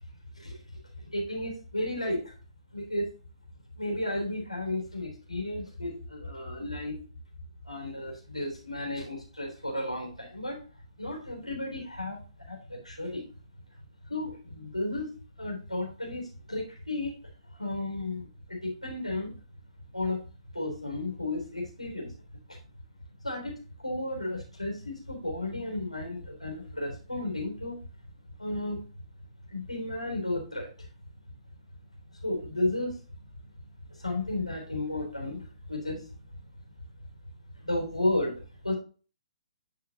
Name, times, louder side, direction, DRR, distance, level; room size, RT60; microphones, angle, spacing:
voice 1, 0.3-2.3 2.7-3.1 3.8-7.0 7.6-10.6 11.0-13.3 14.1-15.1 15.4-17.2 17.5-19.3 19.9-20.2 20.5-22.1 22.5-22.6 23.2-23.5 23.8-27.8 28.4-28.8 29.5-30.9 32.1-33.0 33.9-36.0 37.6-38.7, left 1 dB, 90° left, 0 dB, 3.5 m, -33 dB
9.1 x 5.8 x 2.9 m, 0.37 s
figure-of-eight pair, 125°, 3 cm